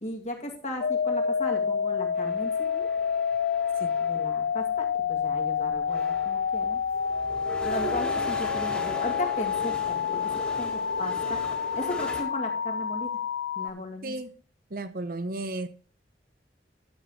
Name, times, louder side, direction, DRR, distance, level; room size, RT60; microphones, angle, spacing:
voice 1, 0.0-2.9 4.0-6.8 7.6-9.8 10.1-10.3 10.6-11.4 11.8-13.2 13.6-14.1, left 1 dB, 40° left, 1 dB, 2.1 m, -36 dB
sound 1, 0.8-13.7, left 7 dB, 75° left, 0.3 m, -28 dB
sound 2, 2.2-4.4 5.3-5.4 5.7-12.2, equal, 5° left, 2.0 m, -39 dB
voice 2, 14.0-14.3 14.7-15.7, right 2 dB, 50° right, 10 dB, 0.7 m, -34 dB
11.5 x 7.3 x 3.1 m, 0.41 s
head